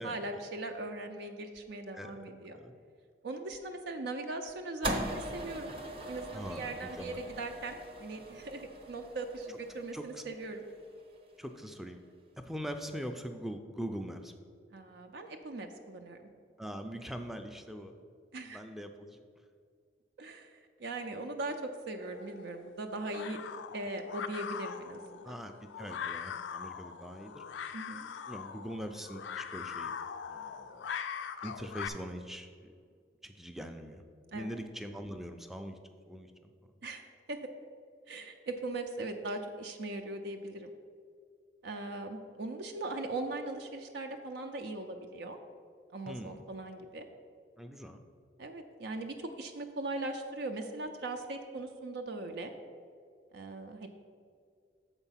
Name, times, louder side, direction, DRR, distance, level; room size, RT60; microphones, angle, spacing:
voice 1, 0.0-2.6 3.2-5.7 6.1-10.6 14.7-16.2 18.3-18.6 20.2-23.4 23.7-25.4 27.7-28.1 34.3-34.5 36.8-37.0 37.3-37.4 38.1-40.7 41.6-45.4 45.9-47.0 48.4-52.5 53.3-53.9, right 2 dB, 70° right, 5 dB, 0.5 m, -40 dB
sound 1, 4.8-11.2, right 1 dB, 30° right, 0.7 m, -41 dB
voice 2, 6.3-7.2 9.9-10.2 11.4-12.0 12.4-14.3 16.6-17.9 18.5-19.2 25.2-27.4 28.3-29.9 30.3-30.8 31.4-32.7 33.2-34.0 34.3-35.8 36.1-36.5 46.1-46.4 47.6-48.0, equal, ahead, 6 dB, 0.4 m, -42 dB
sound 2, 22.0-31.9, left 7 dB, 80° left, 0.4 m, -42 dB
6.9 x 4.5 x 5.7 m, 2.2 s
head